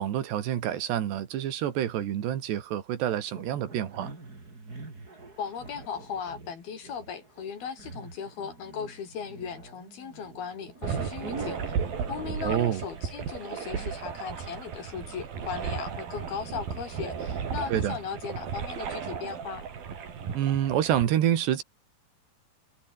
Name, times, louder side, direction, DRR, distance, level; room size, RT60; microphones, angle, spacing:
voice 1, 0.0-4.1 12.4-12.8 17.7-18.0 20.3-21.6, right 11 dB, 80° right, 4.2 m, -27 dB
sound 1, 3.3-16.0, right 3 dB, 20° right, 4.4 m, -45 dB
voice 2, 5.4-11.7 12.1-19.7, left 7 dB, 65° left, 5.4 m, -37 dB
sound 2, 10.8-21.1, right 7 dB, 60° right, 5.3 m, -35 dB
omnidirectional pair, 4.8 m